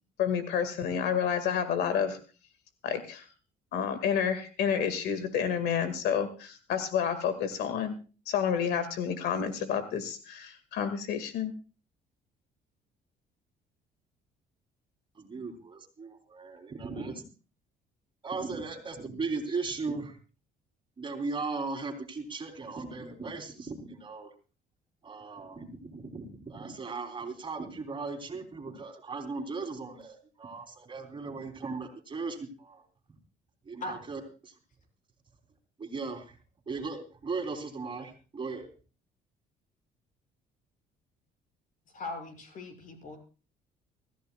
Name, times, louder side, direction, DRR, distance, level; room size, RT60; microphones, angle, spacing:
voice 1, 0.2-2.2 2.8-3.2 3.7-8.0 8.3-11.5, left 8 dB, 75° left, 10 dB, 1.9 m, -29 dB
voice 2, 15.2-17.2 18.2-20.2 21.0-24.3 25.0-32.8 33.7-34.5 35.8-36.3 36.7-38.7, right 4 dB, 30° right, 4 dB, 3.5 m, -37 dB
voice 3, 41.9-43.2, left 2 dB, 50° left, 4 dB, 6.5 m, -39 dB
24.5 x 14.5 x 2.3 m, 0.35 s
cardioid pair, 110°, 17 cm